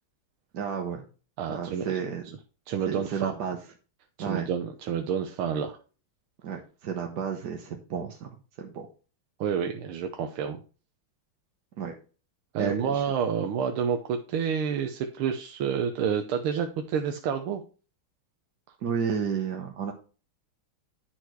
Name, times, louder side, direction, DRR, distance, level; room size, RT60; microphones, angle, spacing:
voice 1, 0.5-1.0 1.5-2.3 2.9-3.6 4.2-4.5 6.4-8.3 8.6-8.9 11.8-12.0 12.6-13.0 18.8-19.9, right 7 dB, 60° right, 3 dB, 1.5 m, -32 dB
voice 2, 1.4-1.8 2.7-3.3 4.2-5.8 9.4-10.6 12.5-17.6, right 7 dB, 85° right, 6 dB, 1.7 m, -29 dB
11.0 x 4.4 x 4.6 m, 0.37 s
omnidirectional pair, 2.3 m